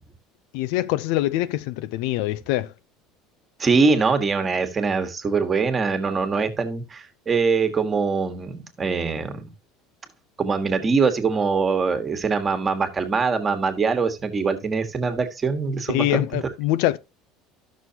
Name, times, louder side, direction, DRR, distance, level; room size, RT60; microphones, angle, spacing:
voice 1, 0.5-2.7 15.9-17.0, left 15 dB, 75° left, 0.5 m, -24 dB
voice 2, 3.6-9.5 10.4-16.2, right 4 dB, 25° right, 1.5 m, -23 dB
12.5 x 6.2 x 2.9 m
supercardioid pair, 110°, 0 cm